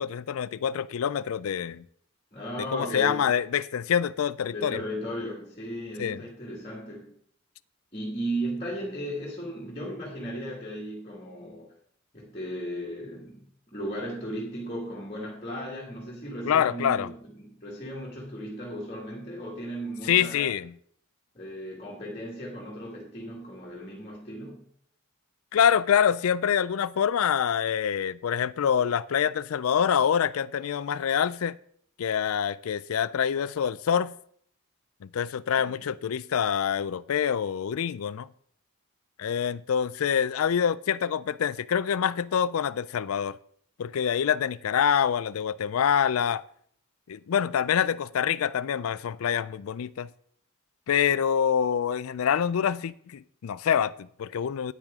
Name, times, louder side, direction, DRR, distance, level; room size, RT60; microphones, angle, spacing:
voice 1, 0.0-1.8 2.7-4.8 6.0-6.2 16.5-17.1 20.1-20.7 25.5-31.6 32.0-34.1 35.0-38.3 39.2-43.4 43.8-46.4 47.1-50.1 50.9-54.7, left 8 dB, 75° left, 0.4 m, -26 dB
voice 2, 2.3-3.3 4.5-7.1 7.9-11.7 12.1-20.5 21.3-24.7 35.6-35.8, equal, 25° left, 2.0 m, -36 dB
9.6 x 8.9 x 3.6 m
head